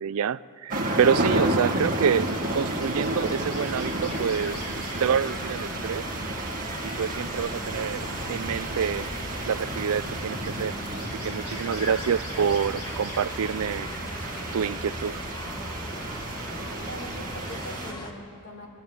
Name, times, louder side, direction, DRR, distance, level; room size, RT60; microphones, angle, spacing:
voice 1, 0.0-4.6 5.0-6.1 6.8-9.1 9.5-10.8 11.2-13.9 14.5-15.2, right 7 dB, 70° right, 18 dB, 0.4 m, -27 dB
sound 1, 0.7-17.9, right 1 dB, 40° right, 2.1 m, -32 dB
sound 2, 1.3-18.1, equal, 20° left, 1.6 m, -39 dB
sound 3, 2.0-17.6, equal, 70° left, 5.0 m, -42 dB
voice 2, 16.8-18.7, equal, 55° left, 0 dB, 4.1 m, -42 dB
24.5 x 13.0 x 9.4 m, 2.5 s
head